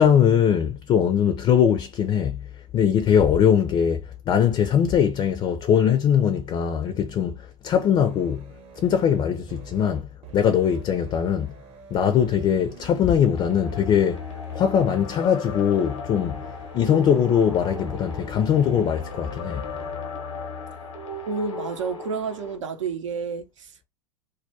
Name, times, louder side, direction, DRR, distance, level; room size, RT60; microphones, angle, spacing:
voice 1, 0.0-2.5 2.7-8.5 8.8-10.1 10.3-11.5 11.9-16.4 16.7-19.7, left 8 dB, 30° left, 0.4 m, -21 dB
sound 1, 8.0-20.0, right 6 dB, 40° right, 0.8 m, -47 dB
sound 2, 13.2-22.6, left 4 dB, 85° left, 0.9 m, -36 dB
voice 2, 21.2-23.9, right 5 dB, 85° right, 0.6 m, -30 dB
2.4 x 2.2 x 2.6 m
hypercardioid pair, 95°, 16 cm